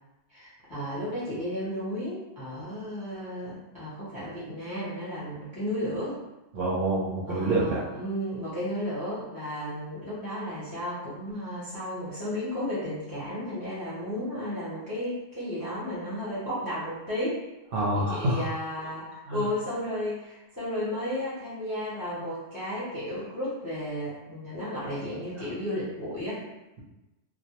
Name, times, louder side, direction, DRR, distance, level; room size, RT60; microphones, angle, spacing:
voice 1, 0.3-6.2 7.3-17.4 17.9-26.4, equal, 25° left, -10 dB, 0.5 m, -33 dB
voice 2, 6.5-7.8 17.7-18.5 19.3-19.5 25.4-25.5, right 1 dB, 60° right, -8 dB, 0.7 m, -27 dB
2.1 x 2.1 x 2.8 m, 0.99 s
omnidirectional pair, 1.3 m